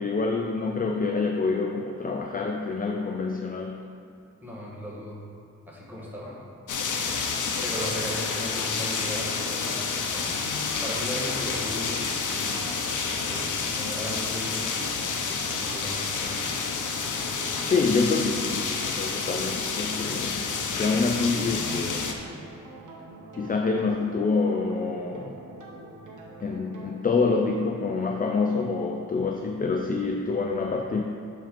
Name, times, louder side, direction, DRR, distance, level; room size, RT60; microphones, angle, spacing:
voice 1, 0.0-3.9 17.7-22.1 23.4-25.4 26.4-31.0, left 4 dB, 30° left, 2 dB, 0.4 m, -27 dB
voice 2, 4.4-5.2 5.7-6.5 7.6-10.3 10.8-12.6 13.3-14.9 15.4-16.0, equal, 5° right, -5 dB, 1.4 m, -37 dB
sound 1, 6.7-22.1, left 5 dB, 70° left, 0.7 m, -29 dB
sound 2, 10.2-27.0, right 2 dB, 75° right, 1.2 m, -45 dB
7.7 x 4.3 x 5.1 m, 2.6 s
wide cardioid pair, 150°, 31 cm